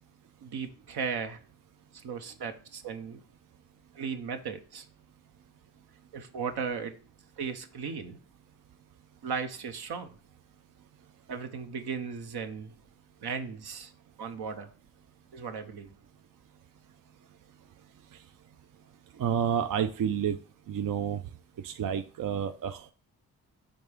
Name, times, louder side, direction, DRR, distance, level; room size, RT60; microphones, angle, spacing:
voice 1, 0.4-1.4 1.9-3.2 3.9-4.9 6.1-7.0 7.4-8.2 9.2-10.1 11.3-12.8 13.2-13.9 14.2-14.7 15.3-15.9, right 6 dB, 70° right, 0.9 m, -36 dB
voice 2, 19.2-20.4 20.7-21.2 21.6-22.9, right 8 dB, 55° right, 0.5 m, -29 dB
5.3 x 3.6 x 5.1 m
supercardioid pair, 50°, 40 cm